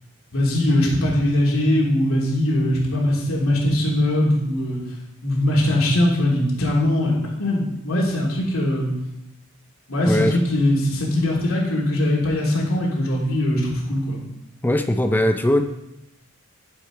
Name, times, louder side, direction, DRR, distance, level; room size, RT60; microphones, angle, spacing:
voice 1, 0.3-4.8 5.2-8.9 9.9-14.2, left 1 dB, 75° left, -4 dB, 2.7 m, -21 dB
voice 2, 10.1-10.4 14.6-15.6, left 1 dB, 10° left, 6 dB, 0.5 m, -19 dB
10.5 x 6.2 x 4.9 m, 0.86 s
head